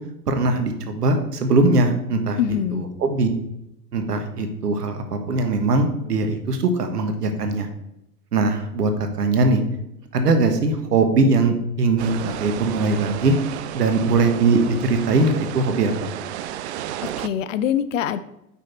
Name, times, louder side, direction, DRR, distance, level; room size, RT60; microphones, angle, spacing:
voice 1, 0.3-2.4 2.7-3.3 3.9-7.7 8.3-8.9 9.2-9.6 10.1-13.3 13.7-16.1, right 3 dB, 70° right, 7 dB, 1.5 m, -21 dB
voice 2, 2.4-2.9 17.0-18.2, left 9 dB, 50° left, 13 dB, 0.7 m, -24 dB
sound 1, 12.0-17.3, right 11 dB, 45° right, 0.5 m, -32 dB
8.9 x 5.6 x 4.4 m, 0.84 s
figure-of-eight pair, 90°, 49 cm